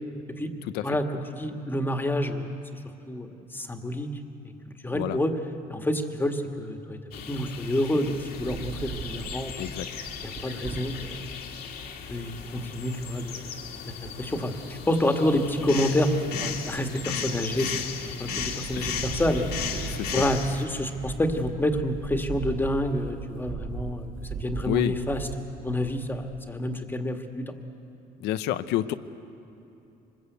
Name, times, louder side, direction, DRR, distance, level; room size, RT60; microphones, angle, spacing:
voice 1, 0.8-2.5 3.1-4.1 4.6-5.3 5.7-7.0 7.3-9.5 10.2-11.2 12.1-13.4 13.9-17.7 18.2-25.3 25.6-27.5, left 1 dB, 10° left, 4 dB, 1.8 m, -28 dB
sound 1, 7.1-20.6, left 6 dB, 70° left, 2.3 m, -36 dB
Wind, 8.3-11.3 11.8-11.9 12.1-12.5 14.0-14.6 15.1-15.6 15.9-17.1 17.5-18.0 18.3-26.5, right 4 dB, 55° right, 2.9 m, -38 dB
voice 2, 19.9-20.2 24.7-24.9 28.2-28.9, left 13 dB, 85° left, 12 dB, 0.8 m, -29 dB
25.0 x 21.0 x 8.2 m, 2.9 s
cardioid pair, 110°, 17 cm